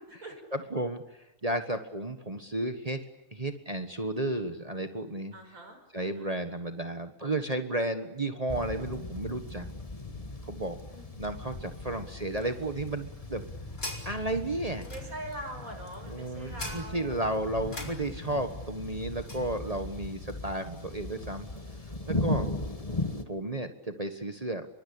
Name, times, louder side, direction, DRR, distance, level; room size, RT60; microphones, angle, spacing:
voice 1, 0.5-1.0 1.4-3.0 3.3-5.3 5.9-9.7 10.5-10.8 11.2-13.4 14.0-14.8 16.1-21.5 22.1-22.5 23.3-24.7, right 1 dB, 25° right, 7 dB, 1.5 m, -33 dB
voice 2, 5.3-6.3 10.9-11.1 14.8-17.2, right 1 dB, 80° right, 4 dB, 6.2 m, -43 dB
sound 1, 8.5-23.2, left 2 dB, 25° left, 1.8 m, -38 dB
sound 2, 13.0-19.5, left 1 dB, 80° left, 4.9 m, -45 dB
26.5 x 23.5 x 8.7 m, 0.89 s
omnidirectional pair, 1.5 m